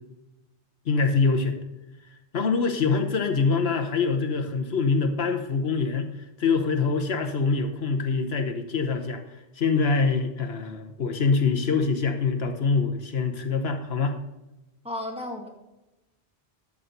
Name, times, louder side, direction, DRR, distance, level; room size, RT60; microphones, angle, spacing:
voice 1, 0.9-1.6 2.3-6.1 6.4-9.2 9.6-14.2, left 4 dB, 75° left, 5 dB, 1.3 m, -24 dB
voice 2, 14.8-15.5, left 1 dB, 5° right, 0 dB, 2.0 m, -33 dB
12.5 x 7.5 x 3.9 m, 0.99 s
omnidirectional pair, 1.1 m